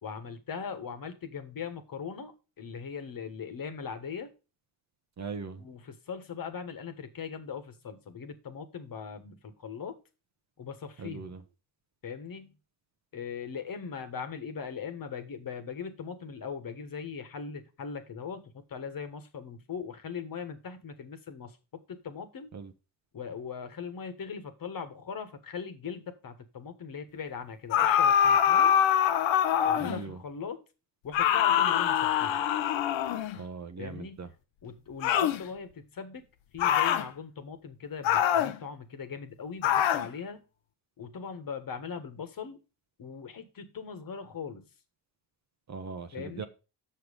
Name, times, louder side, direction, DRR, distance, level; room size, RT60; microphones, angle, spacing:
voice 1, 0.0-2.3 2.6-4.3 5.6-10.0 10.6-11.3 12.0-12.5 13.1-22.5 23.1-28.7 29.6-30.6 31.0-32.4 33.8-34.2 34.6-36.2 36.5-40.4 41.0-42.6 43.0-44.7 46.1-46.5, left 6 dB, 45° left, 1.5 m, -40 dB
voice 2, 5.2-5.6 11.0-11.4 22.5-22.7 29.8-30.2 33.3-34.3 45.7-46.4, right 5 dB, 35° right, 1.0 m, -40 dB
sound 1, 27.7-30.0 31.1-33.4 35.0-35.4 36.6-37.1 38.0-38.6 39.6-40.1, left 9 dB, 65° left, 0.9 m, -24 dB
6.6 x 6.4 x 5.2 m
supercardioid pair, 80°, 49 cm